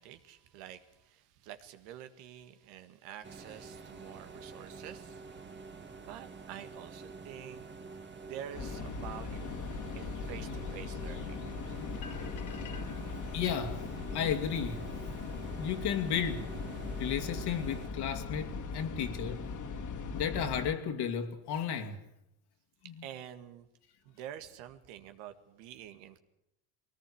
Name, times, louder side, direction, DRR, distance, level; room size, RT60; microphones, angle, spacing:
voice 1, 0.0-5.3 6.1-7.7 8.2-9.5 9.9-11.5 22.8-23.7 24.0-26.2, right 10 dB, 80° right, 2.0 m, -48 dB
sound 1, 3.2-17.9, right 4 dB, 25° right, 1.8 m, -48 dB
sound 2, 8.5-20.7, left 4 dB, 45° left, 2.3 m, -39 dB
voice 2, 13.3-13.9 14.1-14.8 15.6-16.5 17.0-19.4 20.1-22.0 22.8-23.1, left 8 dB, 60° left, 2.6 m, -33 dB
21.0 x 18.0 x 8.6 m
supercardioid pair, 100°, 44 cm